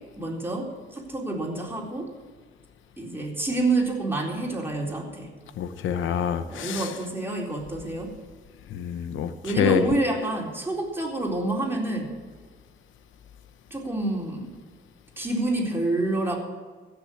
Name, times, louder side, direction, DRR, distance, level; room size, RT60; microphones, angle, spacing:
voice 1, 0.2-2.1 3.0-5.3 6.5-8.1 9.4-12.1 13.7-14.5 15.2-16.4, right 2 dB, 10° right, 4.0 m, -28 dB
voice 2, 5.6-6.9 8.7-9.8, left 9 dB, 80° left, 0.9 m, -26 dB
16.0 x 6.8 x 8.4 m
cardioid pair, 90°, 20 cm